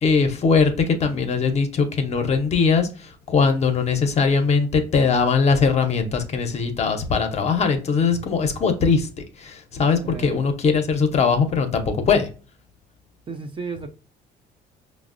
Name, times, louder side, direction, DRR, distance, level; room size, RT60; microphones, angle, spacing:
voice 1, 0.0-12.3, left 5 dB, 40° left, 0.6 m, -21 dB
voice 2, 10.0-10.4 13.3-13.9, right 4 dB, 30° right, 0.5 m, -33 dB
5.0 x 2.0 x 2.4 m
cardioid pair, 110°, 17 cm